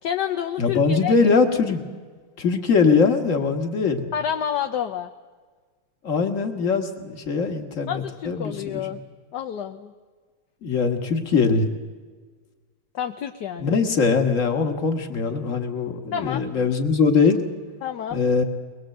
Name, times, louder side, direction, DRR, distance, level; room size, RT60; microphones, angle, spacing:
voice 1, 0.0-1.3 4.1-5.1 7.9-9.0 9.3-9.9 12.9-13.7 16.1-16.5 17.8-18.2, left 9 dB, 65° left, 6 dB, 1.4 m, -29 dB
voice 2, 0.6-1.8 2.4-4.1 6.0-8.9 10.6-11.7 13.6-17.4 18.1-18.4, left 5 dB, 45° left, 6 dB, 2.0 m, -21 dB
23.0 x 21.0 x 7.8 m, 1.5 s
omnidirectional pair, 2.0 m